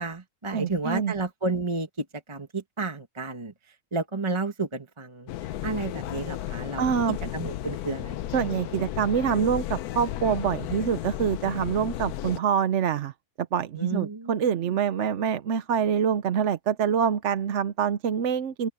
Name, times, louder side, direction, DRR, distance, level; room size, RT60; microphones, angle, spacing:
voice 1, 0.0-5.3 5.6-6.8 7.3-8.9 13.8-14.8, right 3 dB, 20° right, 1.7 m, -32 dB
voice 2, 0.5-1.1 6.8-7.2 8.3-13.1 13.4-18.7, right 7 dB, 60° right, 1.0 m, -25 dB
sound 1, 5.3-12.4, left 13 dB, 85° left, 1.1 m, -34 dB
open air
omnidirectional pair, 1.6 m